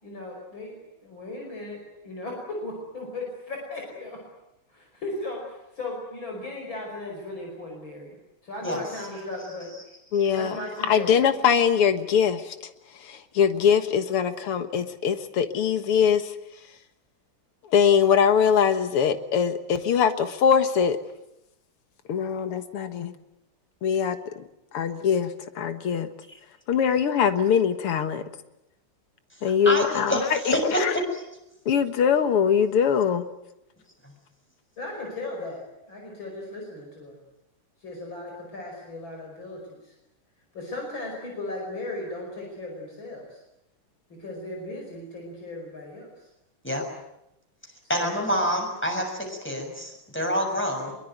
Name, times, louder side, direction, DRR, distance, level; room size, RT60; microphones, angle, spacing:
voice 1, 0.0-4.2 4.7-8.2 8.4-11.1 34.8-37.2 37.8-39.9 40.5-43.4 44.1-46.3 47.9-48.1, left 2 dB, 60° left, 0 dB, 6.1 m, -37 dB
voice 2, 10.1-10.6 10.9-16.4 17.6-21.0 22.1-23.1 23.8-24.4 24.7-26.1 26.7-28.2 29.4-30.9 31.7-33.3, left 7 dB, 90° left, 9 dB, 2.4 m, -22 dB
voice 3, 29.6-31.0 34.0-34.1 46.6-46.8 47.9-50.9, equal, 5° left, 2 dB, 6.7 m, -27 dB
24.0 x 23.0 x 9.3 m, 0.87 s
omnidirectional pair, 2.4 m